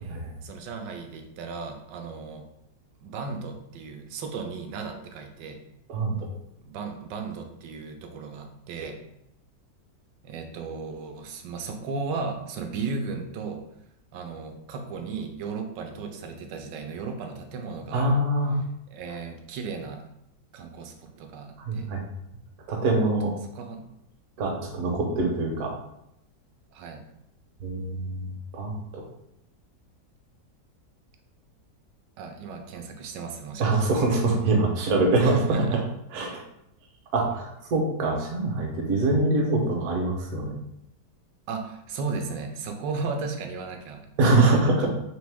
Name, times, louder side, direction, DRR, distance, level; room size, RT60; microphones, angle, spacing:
voice 1, 0.4-2.5 3.0-5.6 6.6-9.0 10.2-13.6 14.1-18.2 18.9-20.0 20.5-21.9 23.5-23.9 26.7-27.0 32.2-34.0 35.2-35.8 41.5-44.1 44.5-44.9, right 4 dB, 85° right, 5 dB, 1.3 m, -35 dB
voice 2, 17.9-18.6 21.6-22.0 22.7-23.3 24.4-25.7 27.6-29.0 33.6-35.4 35.7-35.8 36.1-36.4 37.1-40.5 44.2-44.9, right 2 dB, 60° right, 0 dB, 1.2 m, -24 dB
3.7 x 3.0 x 3.4 m, 0.81 s
omnidirectional pair, 1.9 m